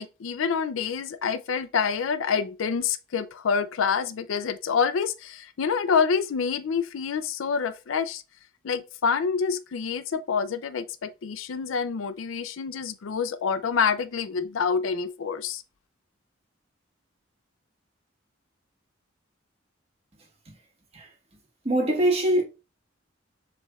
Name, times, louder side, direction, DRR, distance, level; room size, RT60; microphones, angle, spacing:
voice 1, 0.0-8.2 8.6-15.6, left 6 dB, 90° left, 0.4 m, -27 dB
voice 2, 21.6-22.4, right 1 dB, 30° right, 1.3 m, -23 dB
6.8 x 3.2 x 2.3 m
head